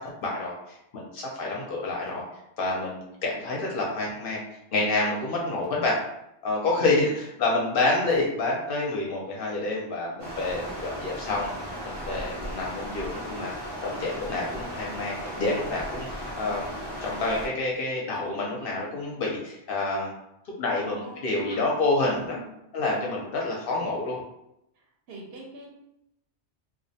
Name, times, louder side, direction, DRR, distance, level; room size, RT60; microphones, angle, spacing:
voice 1, 0.2-2.2 2.6-4.4 4.7-6.0 6.4-13.5 13.8-20.1 20.6-22.4 22.7-24.2, left 2 dB, 60° left, -2 dB, 0.6 m, -28 dB
voice 2, 6.7-7.1 20.7-21.7 22.1-22.6 23.0-23.3 24.8-25.7, right 3 dB, 65° right, -1 dB, 0.7 m, -44 dB
Stream, 10.2-17.5, equal, 45° right, 0.3 m, -36 dB
2.3 x 2.1 x 2.6 m, 0.82 s
omnidirectional pair, 1.2 m